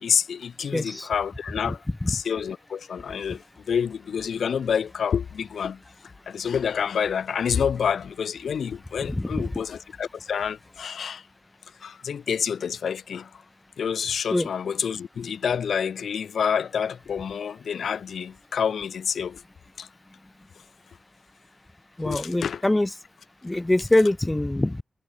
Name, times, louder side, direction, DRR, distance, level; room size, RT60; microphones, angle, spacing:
voice 1, 0.0-5.8 6.3-11.2 11.8-13.4 13.8-19.4 19.8-19.9 22.0-22.6, left 7 dB, 85° left, 0.4 m, -28 dB
voice 2, 0.7-1.1 1.6-1.7 2.0-2.2 9.0-9.5 14.3-14.5 22.0-22.9 23.4-24.8, left 1 dB, 15° left, 0.6 m, -24 dB
sound 1, 3.2-10.9, left 4 dB, 40° left, 2.1 m, -56 dB
wide cardioid pair, 140°, 0 cm